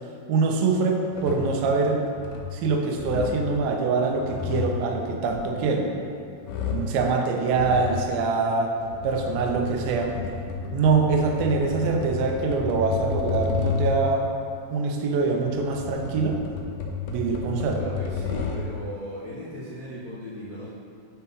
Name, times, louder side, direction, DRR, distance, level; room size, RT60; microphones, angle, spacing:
voice 1, 0.3-2.1 2.5-5.9 6.7-8.7 9.0-10.2 10.7-14.3 14.7-16.4 17.1-17.8, right 4 dB, 75° right, 2 dB, 2.4 m, -24 dB
sound 1, 1.1-1.6 2.0-2.6 2.9-3.5 4.0-6.1 6.4-7.0 7.5-8.0 8.7-14.1 15.1-18.8, left 5 dB, 85° left, 2.7 m, -31 dB
voice 2, 17.6-20.7, equal, 65° left, -13 dB, 0.9 m, -37 dB
10.0 x 5.6 x 3.8 m, 2.4 s
omnidirectional pair, 4.4 m